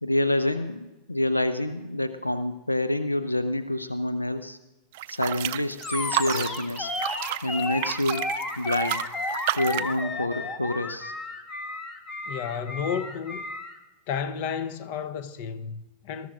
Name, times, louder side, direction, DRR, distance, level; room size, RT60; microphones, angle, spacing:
voice 1, 0.0-4.6 5.1-6.9 7.4-8.2 8.6-9.0 9.5-11.1, left 1 dB, 85° left, 0.5 m, -27 dB
sound 1, 4.9-10.0, right 16 dB, 50° right, 0.4 m, -31 dB
Animal, 5.8-13.8, left 2 dB, 25° left, 1.3 m, -33 dB
voice 2, 12.3-13.4 14.1-16.3, left 7 dB, 45° left, 0.9 m, -32 dB
20.5 x 13.5 x 2.6 m
figure-of-eight pair, 90°, 0 cm